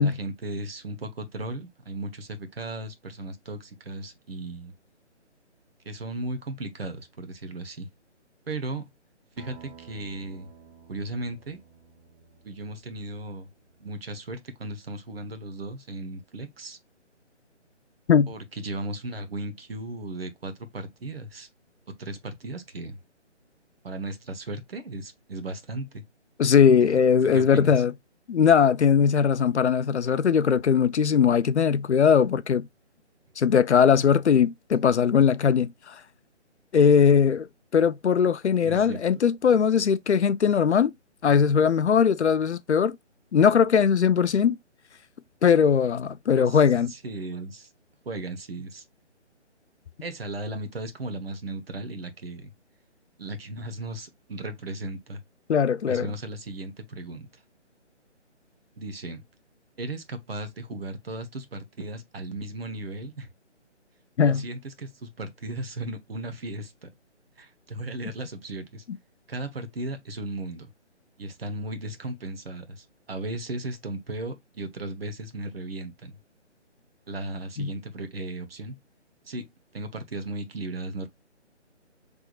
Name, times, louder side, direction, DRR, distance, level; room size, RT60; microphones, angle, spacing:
voice 1, 0.0-4.7 5.8-7.9 8.5-8.9 9.4-10.5 10.9-11.6 12.4-13.5 13.8-16.8 18.3-21.5 22.0-23.0 23.8-26.0 26.8-26.9 27.2-27.8 38.6-39.0 46.3-46.6 46.9-47.7 48.0-48.8 50.0-52.5 53.2-55.2 55.9-57.3 58.8-59.2 59.8-63.3 64.2-66.9 67.4-68.8 69.3-70.7 71.2-76.2 77.1-78.8 79.3-81.1, right 2 dB, 55° right, 1.1 m, -36 dB
Acoustic guitar, 9.4-14.2, right 7 dB, 30° right, 3.0 m, -52 dB
voice 2, 26.4-27.9 28.3-32.7 33.4-35.9 36.7-37.5 37.7-40.9 41.2-43.0 43.3-44.6 45.4-46.9 55.5-56.1 64.2-64.4 77.6-77.7, left 7 dB, 70° left, 0.5 m, -20 dB
5.7 x 3.5 x 2.3 m
figure-of-eight pair, 150°, 36 cm